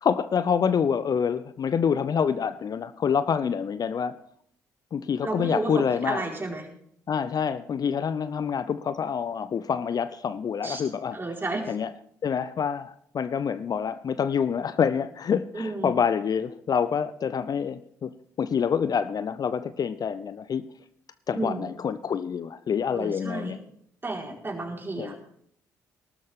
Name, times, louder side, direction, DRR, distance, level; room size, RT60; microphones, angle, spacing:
voice 1, 0.0-4.2 4.9-6.2 7.1-11.2 11.7-11.9 12.2-18.1 18.4-20.6 21.3-23.6 25.0-25.2, left 7 dB, 45° left, 14 dB, 0.6 m, -27 dB
voice 2, 5.2-6.7 10.6-10.8 11.1-11.7 15.5-16.0 21.3-21.7 22.9-23.6 24.0-25.2, right 2 dB, 25° right, 0 dB, 4.5 m, -32 dB
17.5 x 13.0 x 3.7 m, 0.68 s
hypercardioid pair, 45°, 9 cm